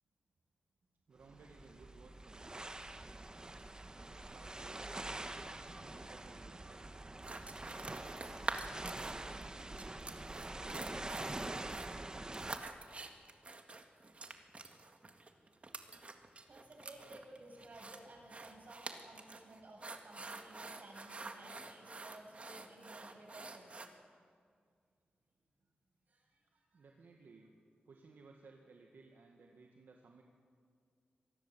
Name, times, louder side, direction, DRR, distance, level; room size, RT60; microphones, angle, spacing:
voice 1, 1.1-2.5 4.1-6.9 26.7-27.5 27.9-30.2, right 4 dB, 80° right, 2 dB, 1.9 m, -60 dB
sound 1, 1.2-12.6, right 2 dB, 25° right, 1.3 m, -45 dB
sound 2, 7.2-9.4 9.8-23.9, right 3 dB, 40° right, 1.9 m, -47 dB
voice 2, 16.5-23.8 26.1-26.9, right 2 dB, 55° right, 0 dB, 7.3 m, -56 dB
26.0 x 19.5 x 7.5 m, 2.1 s
wide cardioid pair, 100°, 3 cm